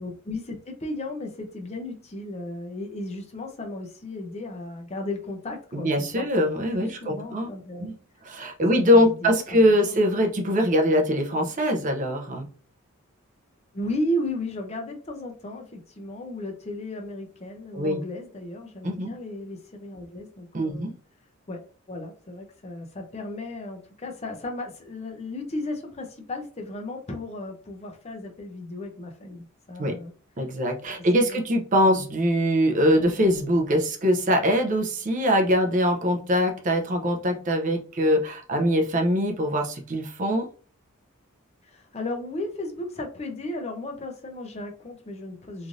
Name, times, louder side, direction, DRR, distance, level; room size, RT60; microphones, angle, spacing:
voice 1, 0.0-6.3 6.8-7.9 8.6-10.0 13.7-20.9 21.5-30.1 31.0-31.4 31.8-32.0 41.6-45.7, left 1 dB, 30° left, 0.5 m, -35 dB
voice 2, 5.7-7.5 7.8-7.9 8.3-12.5 17.7-18.0 18.8-19.2 20.5-21.0 29.8-30.0 30.4-40.5, equal, 35° right, 0.5 m, -23 dB
3.1 x 2.5 x 2.5 m
head